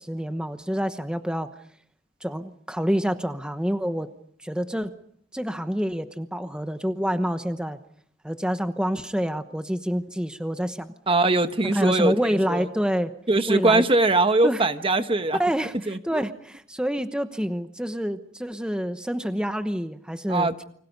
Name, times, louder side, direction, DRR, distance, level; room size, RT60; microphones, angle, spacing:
voice 1, 0.0-1.5 2.2-4.1 4.4-4.9 5.3-7.8 8.2-10.9 11.6-13.1 13.5-13.8 14.4-14.6 15.4-20.5, equal, 5° right, 1.0 m, -27 dB
voice 2, 11.1-12.7 13.3-15.4 15.9-16.2 20.3-20.6, right 2 dB, 30° right, 1.2 m, -22 dB
30.0 x 24.5 x 5.4 m
head